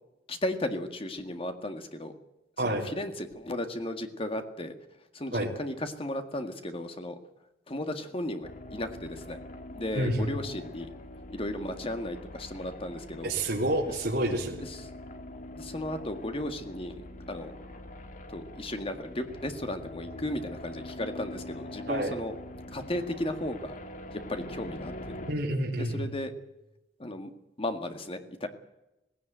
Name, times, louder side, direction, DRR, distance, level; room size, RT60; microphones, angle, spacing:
voice 1, 0.3-2.1 2.6-4.8 5.1-7.2 7.7-9.4 9.7-10.9 11.3-13.3 14.6-14.9 15.5-17.0 17.3-17.5 18.3-22.3 22.7-23.8 24.1-24.9 25.8-26.3 27.0-27.3 27.6-28.5, left 1 dB, 35° left, 7 dB, 1.8 m, -35 dB
sound 1, 8.4-25.3, left 1 dB, 50° left, 1.5 m, -44 dB
voice 2, 9.9-10.3 13.2-14.6 21.9-22.1 25.3-26.1, right 1 dB, 65° right, -2 dB, 3.2 m, -28 dB
18.0 x 16.5 x 9.1 m, 0.95 s
head